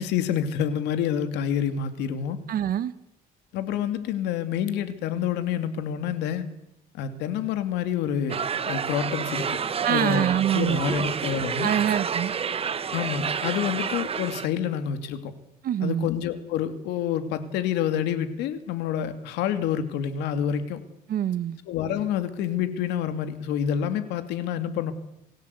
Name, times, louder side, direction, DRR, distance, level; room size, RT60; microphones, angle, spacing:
voice 1, 0.0-2.4 3.5-6.4 6.9-8.4 8.6-9.6 9.9-10.3 10.5-11.7 12.9-15.3 15.8-20.8 21.7-24.9, left 9 dB, 90° left, 2.6 m, -28 dB
voice 2, 2.5-2.9 9.8-11.0 11.6-12.3 15.6-16.1 21.1-21.6, right 10 dB, 60° right, 1.5 m, -25 dB
sound 1, 8.3-14.5, right 6 dB, 35° right, 1.4 m, -29 dB
26.5 x 16.0 x 8.4 m
cardioid pair, 110°, 17 cm